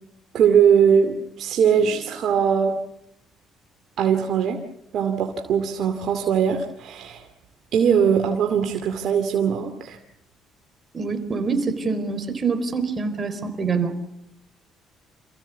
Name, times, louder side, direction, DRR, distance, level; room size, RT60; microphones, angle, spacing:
voice 1, 0.3-2.7 4.0-4.6 4.9-7.2 7.7-10.0, right 7 dB, 65° right, 4 dB, 2.4 m, -20 dB
voice 2, 10.9-13.9, right 4 dB, 35° right, 10 dB, 4.1 m, -25 dB
28.0 x 16.0 x 8.3 m, 0.79 s
supercardioid pair, 75°, 0 cm